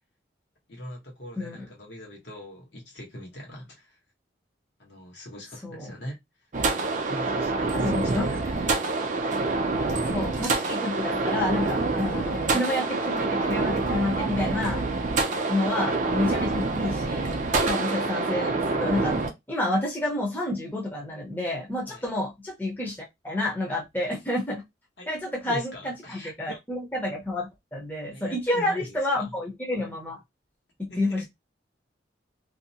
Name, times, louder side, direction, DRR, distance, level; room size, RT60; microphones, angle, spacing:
voice 1, 0.7-4.0 4.8-6.2 7.0-8.1 8.4-8.8 15.2-15.5 21.9-22.1 25.0-25.1 25.5-26.6 28.1-29.3 30.9-31.3, equal, 65° left, 1.1 m, -42 dB
sound 1, 6.5-19.3, right 3 dB, 40° right, 0.4 m, -26 dB
voice 2, 7.7-8.4 10.0-14.8 15.5-17.4 17.6-19.2 19.5-24.6 25.1-30.2 30.8-31.3, left 1 dB, 10° left, 0.6 m, -29 dB
2.7 x 2.1 x 2.7 m
head